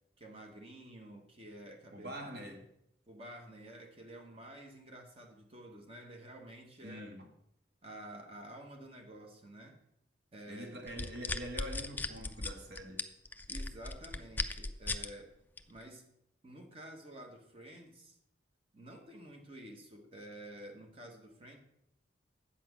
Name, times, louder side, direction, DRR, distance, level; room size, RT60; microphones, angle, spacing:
voice 1, 0.2-2.5 3.1-7.1 7.8-9.8 10.3-11.1 13.5-15.3 15.7-16.1 16.4-18.2 18.7-21.6, right 1 dB, 30° right, 1.3 m, -50 dB
voice 2, 1.9-2.7 6.8-7.3 10.5-13.0, equal, 55° right, 1.7 m, -44 dB
sound 1, 10.9-15.1 15.6-15.8, left 3 dB, 10° left, 0.3 m, -37 dB
8.4 x 6.1 x 6.1 m
head